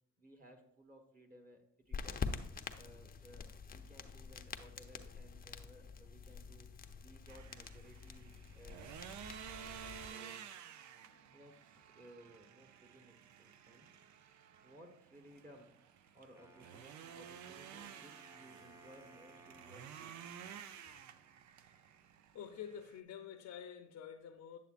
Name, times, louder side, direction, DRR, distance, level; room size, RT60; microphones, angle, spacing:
voice 1, 0.2-2.3 2.8-6.7 7.0-8.9 9.5-10.5 11.3-13.9 14.6-15.7 16.1-20.2, right 1 dB, 30° right, 4 dB, 1.2 m, -60 dB
sound 1, 1.9-10.1, left 5 dB, 30° left, 0.6 m, -46 dB
sound 2, 7.3-23.0, right 8 dB, 70° right, 0.5 m, -53 dB
Wind instrument woodwind instrument, 16.3-21.3, right 2 dB, 10° right, 0.8 m, -61 dB
voice 2, 21.6-21.9 22.3-24.6, left 8 dB, 70° left, 3 dB, 0.7 m, -50 dB
9.1 x 7.0 x 2.5 m, 0.75 s
cardioid pair, 90°, 30 cm